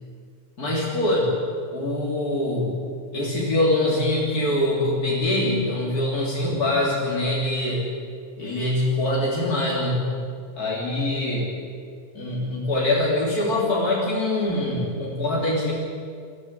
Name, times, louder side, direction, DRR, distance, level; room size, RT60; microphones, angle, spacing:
voice 1, 0.6-1.3 1.7-2.8 3.1-7.9 8.4-10.1 10.6-11.5 12.2-15.7, left 1 dB, 75° left, -5 dB, 3.9 m, -24 dB
23.0 x 14.5 x 8.5 m, 2.2 s
omnidirectional pair, 1.6 m